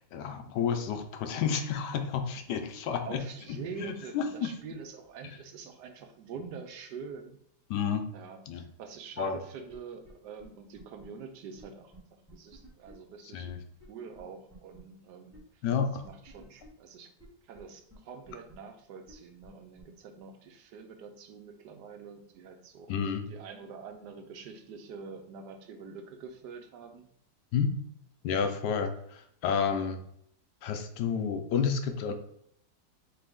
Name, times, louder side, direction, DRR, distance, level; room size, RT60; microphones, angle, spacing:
voice 1, 0.1-3.2 3.5-4.5 5.2-5.3 7.7-8.1 8.5-8.6 9.2-9.4 13.3-13.6 15.6-16.1 22.9-23.2 27.5-27.7 28.2-30.0 30.6-32.1, left 6 dB, 80° left, 6 dB, 1.3 m, -30 dB
voice 2, 3.0-7.4 8.1-13.5 13.9-15.6 16.0-17.1 17.4-27.1, right 5 dB, 80° right, 6 dB, 1.2 m, -45 dB
sound 1, 9.7-9.8 10.0-10.1 10.4-10.5 10.7-11.0 11.6-11.7 11.9-12.0 12.3-12.9 13.4-13.5 13.8-13.9 14.1-14.2 14.5-14.8 15.3-15.4 15.7-15.8 16.0-16.7 17.2-17.3 17.5-17.6 17.9-18.0 18.2-18.5 19.1-19.2 19.4-19.5 19.8-19.9, equal, 10° right, 1.4 m, -54 dB
4.2 x 3.3 x 3.5 m, 0.71 s
omnidirectional pair, 1.8 m